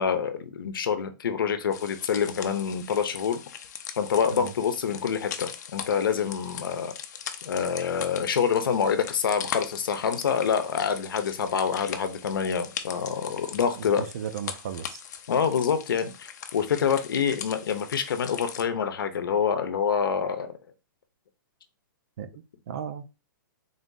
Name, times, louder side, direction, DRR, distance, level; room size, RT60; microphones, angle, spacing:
voice 1, 0.0-3.4 4.0-6.9 7.4-14.1 15.3-20.5, left 7 dB, 85° left, 0.8 m, -26 dB
sound 1, 1.7-18.6, left 8 dB, 55° left, 0.6 m, -40 dB
voice 2, 13.8-15.0 22.2-22.3 22.7-23.1, right 8 dB, 45° right, 0.5 m, -35 dB
3.7 x 2.7 x 3.7 m
hypercardioid pair, 165°, 11 cm